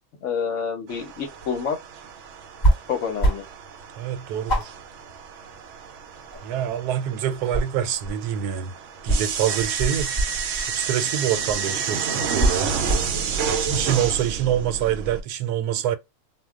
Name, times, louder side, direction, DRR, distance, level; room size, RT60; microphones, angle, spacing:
voice 1, 0.2-1.8 2.9-3.4, left 6 dB, 60° left, 0.9 m, -28 dB
sound 1, 0.9-15.2, right 6 dB, 70° right, 0.8 m, -30 dB
sound 2, 2.6-2.8 3.2-3.6 3.9-4.0 4.5-5.8 6.1-7.0 7.3-8.3 9.1-10.7 11.5-11.7 12.3-13.2, right 1 dB, 35° left, 1.0 m, -23 dB
voice 2, 4.0-4.7 6.4-8.7 9.0-10.1 10.7-12.7 13.5-16.0, right 10 dB, 90° right, 1.1 m, -26 dB
2.4 x 2.2 x 3.5 m
omnidirectional pair, 1.6 m